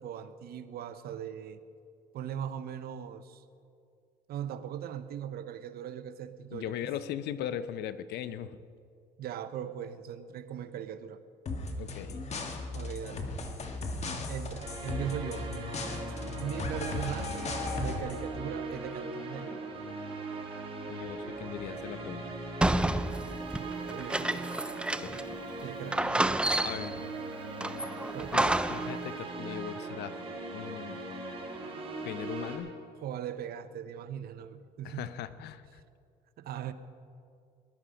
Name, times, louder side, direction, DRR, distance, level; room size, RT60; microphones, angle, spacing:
voice 1, 0.0-1.6 2.1-3.4 4.3-6.8 9.2-11.2 12.7-13.3 14.3-15.5 16.4-19.7 23.6-24.5 25.6-26.3 28.1-28.6 33.0-35.1 36.4-36.7, right 9 dB, 65° right, 11 dB, 0.9 m, -39 dB
voice 2, 6.5-8.6 11.8-12.2 16.2-16.4 20.9-22.4 25.0-25.2 26.6-27.0 28.3-28.4 28.7-30.2 30.5-31.0 32.0-32.7 34.8-35.8, left 10 dB, 75° left, 14 dB, 0.8 m, -39 dB
sound 1, 11.5-18.2, left 3 dB, 40° left, 1.7 m, -36 dB
sound 2, 14.6-32.6, right 2 dB, 35° right, 3.6 m, -39 dB
sound 3, 22.6-25.3 25.6-25.7 25.9-27.0 27.6-28.9, right 1 dB, 5° right, 0.4 m, -29 dB
19.5 x 11.5 x 5.2 m, 2.4 s
cardioid pair, 110°, 17 cm